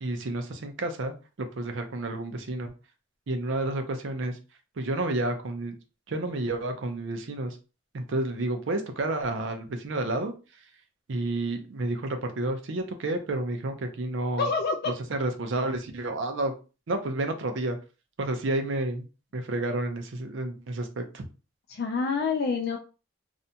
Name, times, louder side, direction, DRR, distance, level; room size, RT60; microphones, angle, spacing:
voice 1, 0.0-2.7 3.3-4.4 4.8-5.8 6.1-7.6 7.9-10.3 11.1-14.5 14.9-16.5 16.9-17.8 18.2-19.1 19.3-21.3, right 2 dB, 65° right, 6 dB, 0.5 m, -30 dB
voice 2, 14.4-14.9 21.7-22.8, left 4 dB, 50° left, 3 dB, 0.3 m, -27 dB
2.6 x 2.2 x 2.7 m, 0.33 s
head